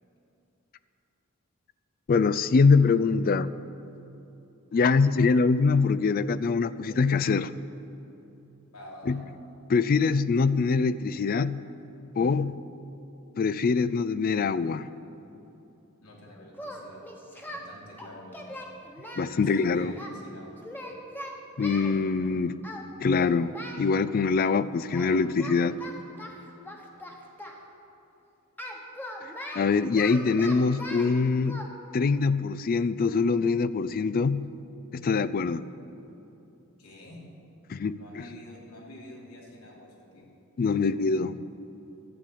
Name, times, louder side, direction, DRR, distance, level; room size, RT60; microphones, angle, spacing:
voice 1, 2.1-3.5 4.7-7.5 9.1-9.2 9.7-11.6 12.2-12.6 13.4-14.9 19.1-19.9 21.6-22.6 23.0-25.8 29.5-31.7 31.9-34.4 34.9-35.7 37.7-37.9 40.6-41.4, left 4 dB, 40° left, 15 dB, 0.3 m, -24 dB
voice 2, 8.7-9.2 16.0-17.0 17.5-18.7 19.3-20.6 36.8-37.2 37.9-40.3 40.6-41.3, left 1 dB, 85° left, -3 dB, 3.0 m, -47 dB
Singing, 16.5-17.6 18.0-20.1 20.6-21.9 22.6-22.9 23.1-23.9 24.9-25.1 25.4-27.6 28.6-31.1 31.5-31.6, left 1 dB, 10° left, 1.1 m, -40 dB
12.0 x 8.4 x 8.5 m, 3.0 s
head